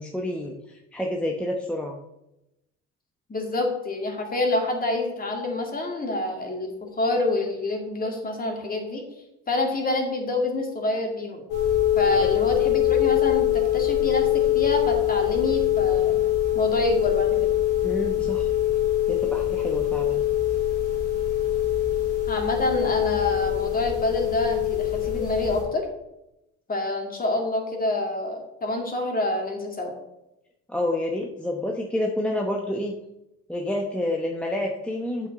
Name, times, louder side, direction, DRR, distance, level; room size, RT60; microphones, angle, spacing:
voice 1, 0.0-2.0 12.2-12.3 17.8-18.5 19.1-20.3 30.7-32.9 33.5-35.3, left 1 dB, 5° left, 0 dB, 0.9 m, -29 dB
voice 2, 3.3-9.0 9.5-11.4 12.0-16.2 16.5-17.5 22.3-25.9 26.7-29.9, left 2 dB, 30° left, 2 dB, 2.2 m, -27 dB
sound 1, 11.5-25.6, left 12 dB, 90° left, 3.1 m, -23 dB
7.9 x 7.5 x 4.1 m, 0.89 s
cardioid pair, 105°, 31 cm